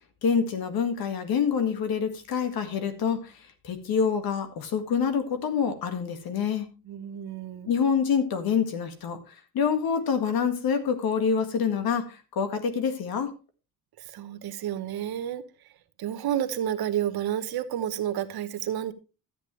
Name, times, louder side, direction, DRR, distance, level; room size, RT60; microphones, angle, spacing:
voice 1, 0.2-3.3 3.6-6.7 7.7-9.2 9.5-13.3, left 6 dB, 70° left, 1.9 m, -26 dB
voice 2, 6.9-7.7 14.0-15.4 16.0-18.9, right 10 dB, 75° right, 1.1 m, -30 dB
12.5 x 8.5 x 3.2 m
cardioid pair, 180°, 37 cm